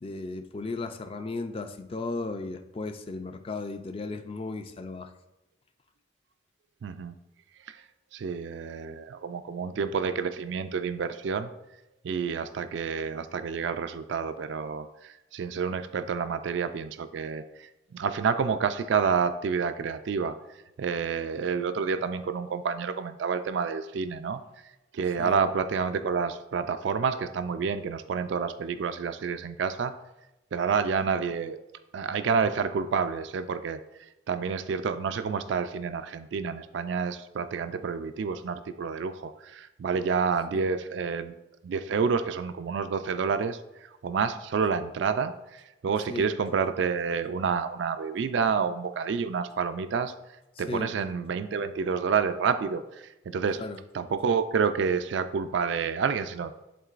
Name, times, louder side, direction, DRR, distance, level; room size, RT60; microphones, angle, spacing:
voice 1, 0.0-5.1 25.2-25.4 40.5-40.7 46.1-46.3 50.6-51.0 53.6-53.8, left 3 dB, 30° left, 8 dB, 0.4 m, -35 dB
voice 2, 6.8-7.2 7.7-7.8 8.1-11.5 12.0-20.4 20.8-24.4 24.9-29.9 30.5-31.6 31.9-33.8 34.3-41.3 41.6-50.1 50.6-53.6 53.9-56.5, right 5 dB, 65° right, 11 dB, 0.3 m, -29 dB
11.0 x 3.8 x 2.5 m, 0.97 s
head